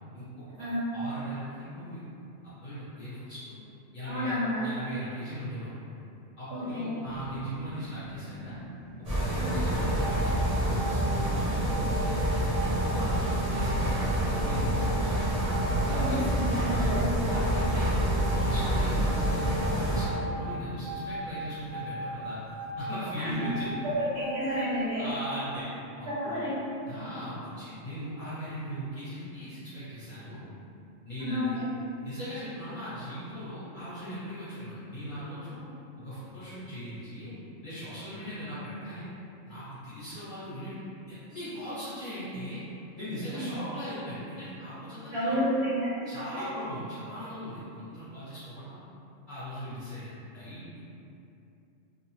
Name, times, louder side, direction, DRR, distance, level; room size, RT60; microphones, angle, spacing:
voice 1, 0.1-2.0 2.4-3.6 3.9-4.3 4.6-5.7 6.4-8.5 9.1-12.5 12.8-13.1 13.5-15.2 15.8-16.2 16.7-16.9 17.3-19.5 19.8-22.4 22.8-23.8 25.0-25.7 26.0-26.4 26.9-30.4 31.0-31.6 32.0-35.6 36.0-37.3 37.6-39.1 39.4-40.8 41.1-42.6 42.9-45.4 46.1-48.8 49.3-50.8, equal, 45° left, -13 dB, 0.9 m, -39 dB
voice 2, 4.1-4.7 6.5-6.9 9.3-9.5 15.9-17.1 23.2-23.4 24.0-25.1 26.1-26.6 31.2-31.7 43.3-43.4 45.1-46.1, equal, 60° right, -11 dB, 1.2 m, -30 dB
sound 1, 7.0-24.2, equal, 70° left, 0.8 m, -45 dB
sound 2, 9.0-20.1, right 1 dB, 35° right, 0.9 m, -27 dB
sound 3, 9.4-25.2, right 1 dB, 85° right, 1.1 m, -39 dB
2.7 x 2.0 x 2.9 m, 2.7 s
omnidirectional pair, 1.3 m